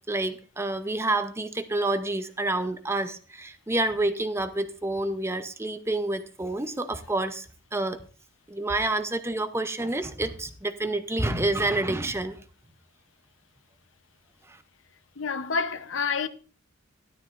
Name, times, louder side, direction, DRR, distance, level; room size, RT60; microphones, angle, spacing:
voice 1, 0.1-7.5 7.7-8.0 8.5-12.4 14.5-14.6, right 2 dB, 10° right, 0.7 m, -28 dB
voice 2, 15.2-16.3, left 5 dB, 65° left, 0.8 m, -28 dB
13.5 x 11.5 x 2.5 m
head